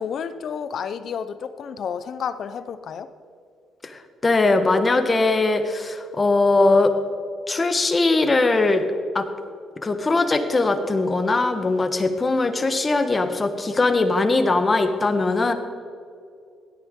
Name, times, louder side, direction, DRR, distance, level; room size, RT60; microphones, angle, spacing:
voice 1, 0.0-3.1, left 7 dB, 60° left, 12 dB, 0.8 m, -31 dB
voice 2, 3.8-6.9 7.5-8.8 9.1-9.3 9.8-15.5, left 3 dB, 30° left, 7 dB, 1.4 m, -20 dB
16.5 x 12.5 x 3.8 m, 2.3 s
cardioid pair, 90°, 0 cm